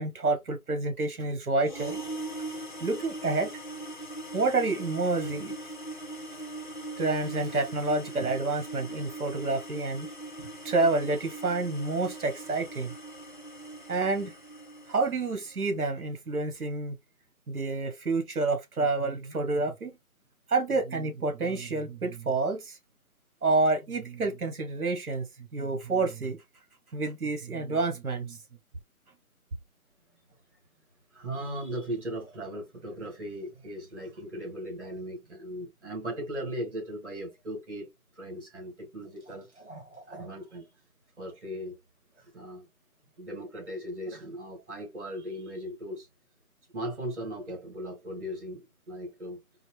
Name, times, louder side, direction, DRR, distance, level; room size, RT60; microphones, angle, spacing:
voice 1, 0.0-2.0 2.8-3.5 4.3-5.5 7.0-10.1 10.6-12.9 13.9-14.3 14.9-16.9 17.5-19.9 20.5-22.8 23.4-25.3 25.5-26.4 26.9-28.4, right 3 dB, 75° right, 1.3 m, -28 dB
sound 1, 1.6-15.5, right 2 dB, 35° left, 0.6 m, -40 dB
voice 2, 31.1-37.9 38.2-40.7 41.2-41.8 42.2-42.7 43.2-46.1 46.7-49.4, equal, 50° right, 2.5 m, -38 dB
4.0 x 2.0 x 3.3 m
figure-of-eight pair, 165°, 45 cm